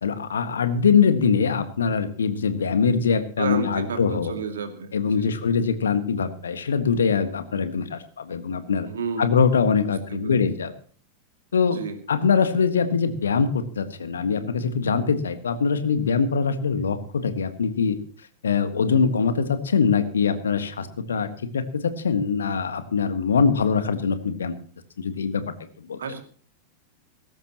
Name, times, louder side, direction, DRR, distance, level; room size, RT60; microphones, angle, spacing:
voice 1, 0.0-4.3 4.9-8.9 9.2-10.7 11.5-11.8 12.1-18.0 18.4-24.5 25.0-25.4 25.8-26.0, left 5 dB, 70° left, 11 dB, 1.6 m, -23 dB
voice 2, 3.4-5.4 8.8-9.4 9.8-10.4 11.7-12.0 26.0-26.2, right 5 dB, 65° right, 7 dB, 2.4 m, -32 dB
19.0 x 16.0 x 3.0 m, 0.44 s
figure-of-eight pair, 90°, 0 cm